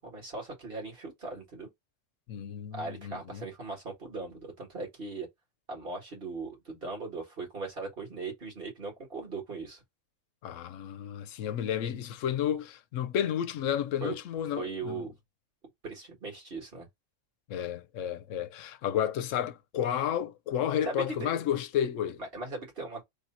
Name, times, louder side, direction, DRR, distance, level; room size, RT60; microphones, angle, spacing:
voice 1, 0.0-1.7 2.7-5.3 5.7-9.8 14.0-14.2 14.6-15.2 15.8-16.9 20.9-21.3 22.2-23.1, right 3 dB, 50° right, 1.9 m, -39 dB
voice 2, 2.3-3.4 10.4-15.1 17.5-22.2, left 9 dB, 85° left, 1.0 m, -32 dB
3.4 x 2.7 x 4.2 m
omnidirectional pair, 1.3 m